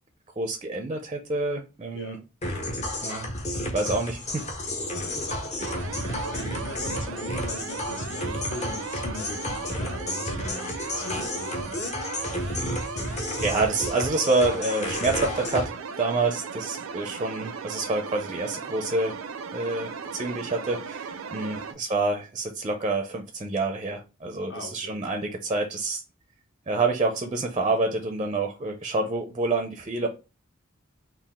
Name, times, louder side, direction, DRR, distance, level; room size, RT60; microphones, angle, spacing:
voice 1, 0.4-2.2 3.0-3.3 3.7-4.7 12.7-13.0 13.4-19.2 19.5-26.0 26.7-30.1, right 3 dB, 25° right, 0.4 m, -27 dB
sound 1, 2.4-15.6, left 1 dB, 35° left, 0.8 m, -32 dB
voice 2, 4.9-11.7 21.4-21.7 24.5-25.0, left 1 dB, 65° left, 0.9 m, -40 dB
sound 2, 5.6-21.7, right 5 dB, 85° right, 0.5 m, -37 dB
3.8 x 2.4 x 3.5 m
head